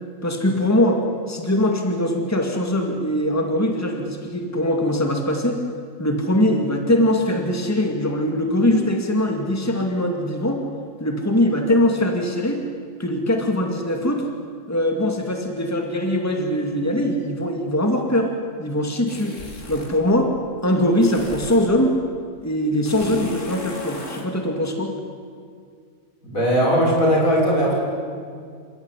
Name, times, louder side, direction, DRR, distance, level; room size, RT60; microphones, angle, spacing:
voice 1, 0.2-1.0 1.3-5.6 6.0-10.6 11.0-12.6 13.0-14.3 14.7-18.3 18.6-19.4 19.7-20.3 20.6-21.9 22.4-24.9, left 1 dB, 10° left, 3 dB, 2.4 m, -21 dB
sound 1, 19.1-20.0 21.0-21.7 22.8-24.3, left 1 dB, 65° left, 3.1 m, -35 dB
voice 2, 26.2-27.7, equal, 80° left, -2 dB, 6.6 m, -18 dB
27.5 x 16.5 x 9.9 m, 2.1 s
omnidirectional pair, 1.4 m